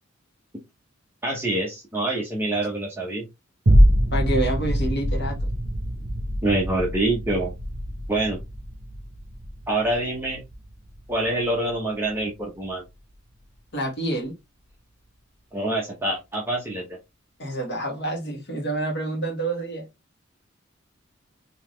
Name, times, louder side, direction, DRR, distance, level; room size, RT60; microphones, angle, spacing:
voice 1, 1.2-3.2 6.4-7.5 8.1-8.4 9.7-10.4 11.1-12.8 15.5-17.0, right 1 dB, 10° right, 0.8 m, -26 dB
sound 1, 3.7-12.2 12.7-12.8, equal, 60° right, 1.0 m, -24 dB
voice 2, 4.1-5.4 13.7-14.4 17.4-19.9, right 1 dB, 55° left, 1.5 m, -27 dB
4.0 x 2.9 x 3.1 m
head